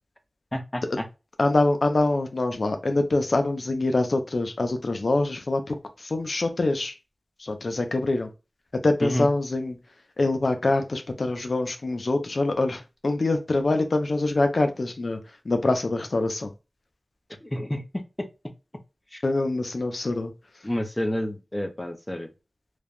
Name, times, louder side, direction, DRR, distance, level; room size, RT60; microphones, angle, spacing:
voice 1, 0.5-1.1 9.0-9.3 17.4-18.3 19.1-19.2 20.6-22.3, left 1 dB, 20° left, 0.5 m, -29 dB
voice 2, 1.4-7.0 7.4-8.3 8.7-9.8 10.2-16.5 19.2-20.3, left 2 dB, 70° left, 0.5 m, -25 dB
3.3 x 2.2 x 2.3 m
wide cardioid pair, 60°, 0 cm